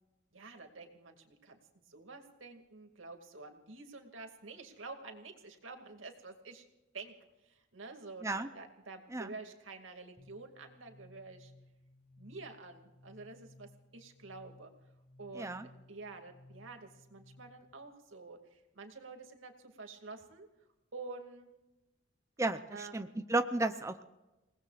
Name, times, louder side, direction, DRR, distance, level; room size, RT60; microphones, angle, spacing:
voice 1, 0.3-6.6 6.9-7.2 7.4-11.5 12.2-14.7 15.2-20.5 20.9-21.5 22.7-23.1, right 3 dB, 85° right, 4 dB, 2.5 m, -49 dB
sound 1, 10.2-17.7, left 2 dB, 5° left, 1.9 m, -60 dB
voice 2, 22.4-24.1, right 2 dB, 15° right, 9 dB, 0.6 m, -33 dB
29.0 x 19.0 x 2.5 m, 1.0 s
head